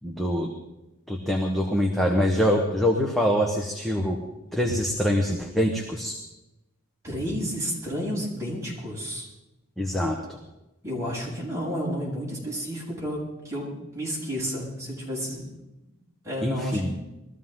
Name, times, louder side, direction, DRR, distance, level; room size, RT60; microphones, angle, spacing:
voice 1, 0.0-0.5 1.1-4.2 4.5-6.1 9.8-10.4 16.4-16.9, equal, ahead, 0 dB, 1.3 m, -24 dB
voice 2, 7.0-9.3 10.8-15.5 16.2-17.0, equal, 15° right, -6 dB, 7.7 m, -31 dB
22.0 x 14.5 x 3.8 m, 0.95 s
head